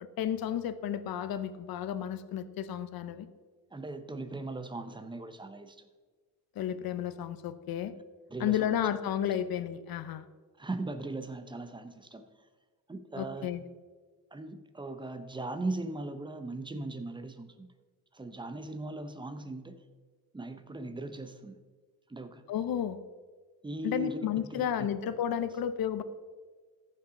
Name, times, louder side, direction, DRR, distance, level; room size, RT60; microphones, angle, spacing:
voice 1, 0.2-3.3 6.6-7.9 8.4-10.2 13.2-13.6 22.5-23.0 23.8-26.0, left 9 dB, 65° left, 13 dB, 0.7 m, -32 dB
voice 2, 3.7-5.9 8.3-8.7 10.6-12.3 12.9-13.5 14.3-17.7 18.1-19.8 20.3-21.6 22.1-22.5 23.6-24.2 24.5-24.9, right 2 dB, 10° right, 9 dB, 0.7 m, -39 dB
14.5 x 5.8 x 3.8 m, 1.4 s
cardioid pair, 115°, 39 cm